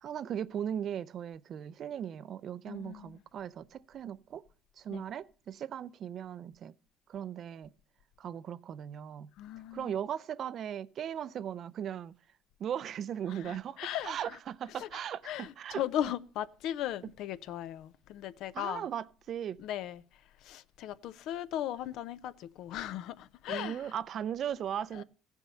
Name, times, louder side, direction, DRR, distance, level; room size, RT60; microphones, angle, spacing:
voice 1, 0.0-4.4 4.8-6.7 7.1-7.7 8.2-9.3 9.7-12.1 12.6-15.8 18.5-19.6 23.5-25.0, right 9 dB, 45° right, 0.5 m, -38 dB
voice 2, 2.7-3.2 4.9-5.0 9.4-9.9 13.3-14.4 14.6-18.9 19.6-20.0 20.4-23.9 24.9-25.0, left 11 dB, 65° left, 0.6 m, -38 dB
15.5 x 7.1 x 5.6 m
cardioid pair, 130°, 0 cm